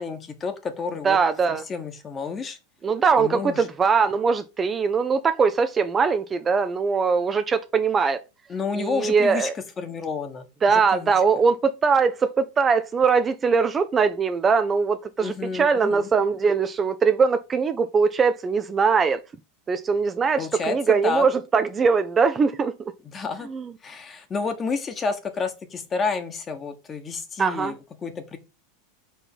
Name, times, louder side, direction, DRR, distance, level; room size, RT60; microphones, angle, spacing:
voice 1, 0.0-1.2 1.7-2.6 3.2-3.6 8.5-9.5 9.8-11.1 15.2-16.1 20.4-21.2 23.0-23.5 23.8-27.7 28.0-28.4, left 4 dB, 25° left, 1.3 m, -30 dB
voice 2, 1.0-1.6 2.8-8.2 8.8-9.5 10.6-19.2 19.7-22.7 23.4-23.7 27.4-27.7, right 5 dB, 25° right, 0.5 m, -21 dB
4.6 x 3.9 x 5.5 m
hypercardioid pair, 90°, 0 cm